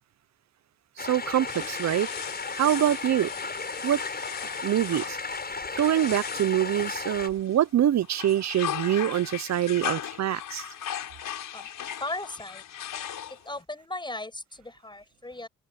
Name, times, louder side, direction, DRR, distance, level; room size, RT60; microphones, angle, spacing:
sound 1, 1.0-7.3, left 4 dB, 30° left, 8.0 m, -35 dB
voice 1, 1.0-2.1 2.5-3.3 3.8-4.0 4.6-5.2 5.8-10.6, right 11 dB, 60° right, 0.7 m, -25 dB
sound 2, 1.5-7.6 8.0-13.6, left 10 dB, 80° left, 5.4 m, -38 dB
voice 2, 12.0-12.6 13.2-15.5, left 2 dB, 15° left, 7.5 m, -37 dB
cardioid pair, 110°, 31 cm